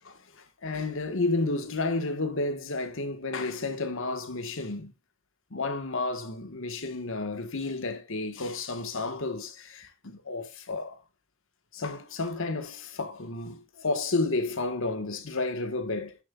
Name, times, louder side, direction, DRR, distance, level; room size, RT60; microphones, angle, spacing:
voice 1, 0.0-4.9 5.5-11.0 11.7-16.2, left 3 dB, 65° left, 1.6 m, -31 dB
10.0 x 6.9 x 2.5 m
head